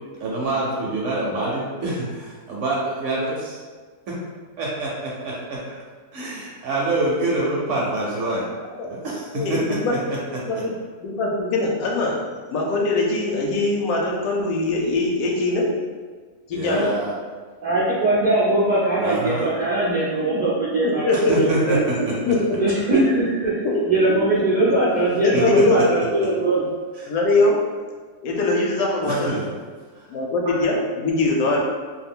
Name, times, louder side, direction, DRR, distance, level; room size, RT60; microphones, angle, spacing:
voice 1, 0.2-3.2 4.6-5.8 6.1-8.5 8.8-10.6 16.5-17.2 19.0-19.5 21.1-22.3 25.3-25.8 27.0-27.1 29.0-29.4 30.0-30.1 30.5-30.6, right 2 dB, 65° right, -4 dB, 0.8 m, -26 dB
voice 2, 9.3-10.0 10.4-10.7 11.0-12.2 12.5-15.7 16.5-16.9 20.2-20.4 20.8-21.8 22.3-22.6 23.6-23.8 24.1-24.2 24.6-24.9 25.2-25.9 27.1-27.6 28.2-29.3 30.1-31.6, left 2 dB, 75° left, -1 dB, 1.0 m, -22 dB
voice 3, 17.6-21.8 22.6-23.6 23.9-26.6, right 2 dB, 85° right, -9 dB, 0.4 m, -21 dB
2.7 x 2.3 x 3.5 m, 1.5 s
omnidirectional pair, 1.7 m